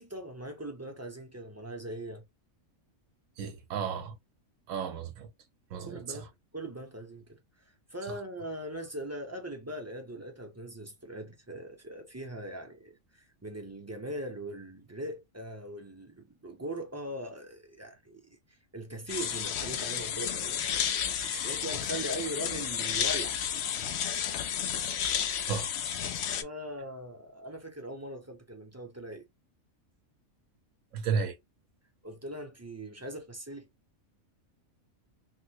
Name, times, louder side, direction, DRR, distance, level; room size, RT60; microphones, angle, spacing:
voice 1, 0.0-2.2 5.8-18.2 18.5-20.6 21.4-23.4 26.4-29.3 32.0-33.7, right 1 dB, 15° right, 0.5 m, -40 dB
voice 2, 3.4-4.2 4.7-5.3 5.7-6.2 21.2-21.6 25.5-25.7 30.9-31.4, right 6 dB, 75° right, 1.0 m, -33 dB
sound 1, 19.1-26.4, left 8 dB, 65° left, 0.7 m, -32 dB
3.6 x 2.1 x 2.8 m
omnidirectional pair, 1.4 m